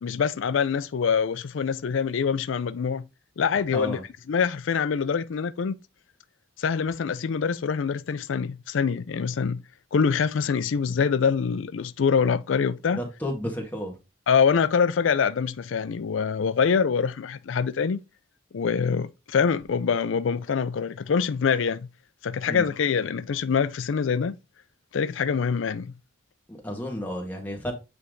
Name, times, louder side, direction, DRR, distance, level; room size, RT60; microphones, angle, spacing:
voice 1, 0.0-3.0 3.4-4.0 4.3-5.8 6.6-9.6 9.9-13.0 14.3-18.0 18.5-21.8 22.2-24.4 24.9-25.9, left 6 dB, 85° left, 0.4 m, -25 dB
voice 2, 13.0-13.9 22.5-22.7 26.5-27.7, equal, 10° left, 1.9 m, -32 dB
8.4 x 3.4 x 3.8 m
head